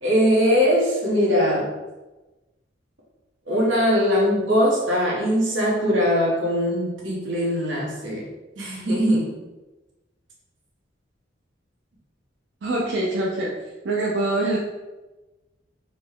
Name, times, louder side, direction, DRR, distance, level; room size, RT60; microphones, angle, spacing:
voice 1, 0.0-1.7 3.5-8.3 8.6-9.3, equal, 90° right, -4 dB, 1.1 m, -21 dB
voice 2, 12.6-13.6 13.8-14.6, right 2 dB, 70° right, -3 dB, 0.5 m, -24 dB
3.9 x 2.2 x 3.5 m, 1.1 s
head